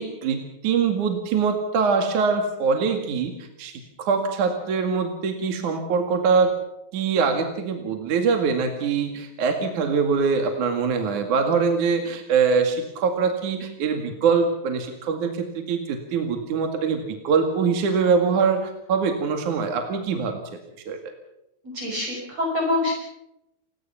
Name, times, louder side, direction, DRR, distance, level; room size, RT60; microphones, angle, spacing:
voice 1, 0.0-3.3 3.6-6.5 6.9-20.6 20.9-21.0, right 5 dB, 50° right, 5 dB, 3.0 m, -23 dB
voice 2, 21.6-22.9, left 2 dB, 35° right, 0 dB, 6.5 m, -25 dB
29.5 x 18.5 x 5.8 m, 0.83 s
omnidirectional pair, 5.3 m